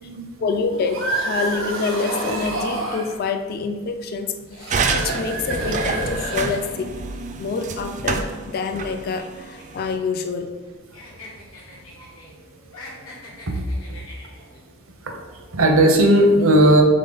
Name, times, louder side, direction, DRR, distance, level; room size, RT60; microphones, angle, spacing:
voice 1, 0.4-6.9 7.4-10.6, left 4 dB, 45° left, 7 dB, 0.3 m, -27 dB
sound 1, 0.7-3.1 4.5-7.0, right 1 dB, 90° right, 1.3 m, -28 dB
sound 2, 4.7-9.9, right 4 dB, 35° right, 0.3 m, -28 dB
sound 3, 8.8-10.7 10.9-12.3 12.6-14.6, left 2 dB, 85° left, 1.2 m, -43 dB
voice 2, 12.0-12.4 13.5-13.6 15.0-16.8, right 1 dB, 70° right, 2 dB, 0.7 m, -17 dB
3.8 x 3.5 x 3.9 m, 1.3 s
head